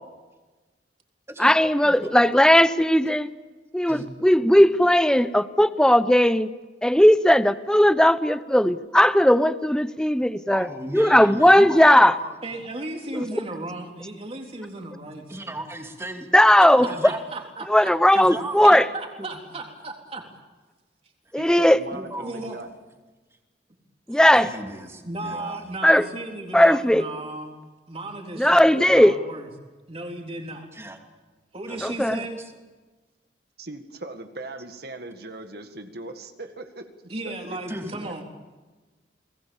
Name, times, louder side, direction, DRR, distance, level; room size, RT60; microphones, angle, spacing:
voice 1, 1.4-3.3 3.7-6.5 6.8-10.7 10.9-12.1 16.3-16.9 17.7-18.8 21.3-21.8 24.1-24.5 25.8-26.1 26.5-27.0 28.4-29.2 31.8-32.2, left 1 dB, 5° left, 13 dB, 0.7 m, -17 dB
voice 2, 10.5-12.4 15.3-16.3 16.9-17.2 18.1-18.8 19.2-19.4 21.9-22.5 24.3-25.7 30.7-31.0 31.7-32.5 37.7-38.0, right 1 dB, 15° right, 3 dB, 2.7 m, -36 dB
voice 3, 12.4-15.5 16.6-17.9 18.6-20.3 22.2-22.6 24.1-24.2 25.0-27.5 27.9-29.5 29.9-30.7 31.5-32.4 37.1-38.2, right 2 dB, 35° right, 2 dB, 3.7 m, -35 dB
voice 4, 21.4-22.7 33.6-37.6 38.0-38.1, right 2 dB, 60° right, 7 dB, 1.8 m, -39 dB
29.5 x 20.5 x 7.2 m, 1.2 s
head